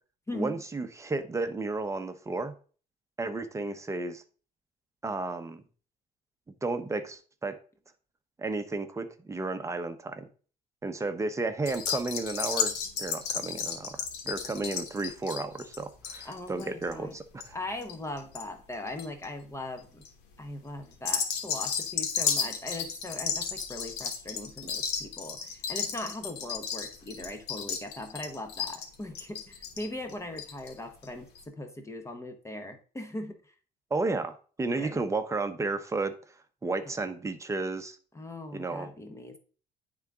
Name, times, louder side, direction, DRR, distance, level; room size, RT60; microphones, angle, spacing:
voice 1, 0.3-2.5 3.2-4.2 5.0-5.6 6.6-7.6 8.4-10.3 10.8-17.6 33.9-36.1 36.6-38.0 38.5-38.9, right 3 dB, 15° right, 8 dB, 0.8 m, -33 dB
sound 1, 11.7-18.4 18.7-19.2 19.8-20.1 20.9-30.7 31.0-31.1 31.4-31.5, left 7 dB, 85° left, 1.3 m, -33 dB
voice 2, 16.2-17.1 17.5-20.0 20.4-33.5 34.8-35.0 38.1-39.4, left 1 dB, 15° left, 5 dB, 0.9 m, -40 dB
9.7 x 3.9 x 3.5 m, 0.40 s
cardioid pair, 110°, 17 cm